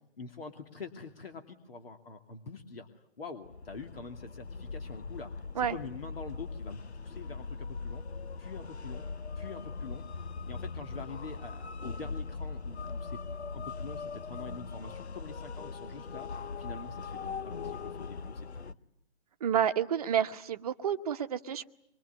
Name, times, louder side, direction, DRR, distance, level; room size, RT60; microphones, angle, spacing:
voice 1, 0.2-2.9 3.2-8.0 8.4-9.1 9.4-16.3 16.6-18.8, left 4 dB, 55° left, 6 dB, 2.6 m, -45 dB
sound 1, 3.4-18.7, left 4 dB, 75° left, 0.9 m, -40 dB
voice 2, 19.4-21.7, right 9 dB, 35° right, 9 dB, 1.1 m, -29 dB
25.0 x 22.5 x 9.5 m, 0.77 s
figure-of-eight pair, 145°, 34 cm